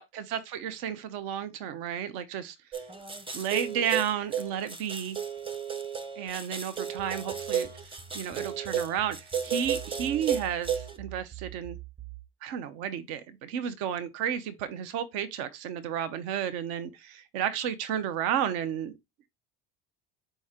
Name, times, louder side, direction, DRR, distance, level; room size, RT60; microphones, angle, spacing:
voice 1, 0.0-2.6 3.3-5.2 6.2-7.7 8.1-11.8 12.4-18.9, right 9 dB, 70° right, 0.7 m, -32 dB
sound 1, 2.7-10.9, right 8 dB, 15° right, 0.7 m, -33 dB
sound 2, 7.0-12.3, right 13 dB, 45° right, 1.4 m, -46 dB
4.4 x 3.0 x 3.6 m
supercardioid pair, 80°, 40 cm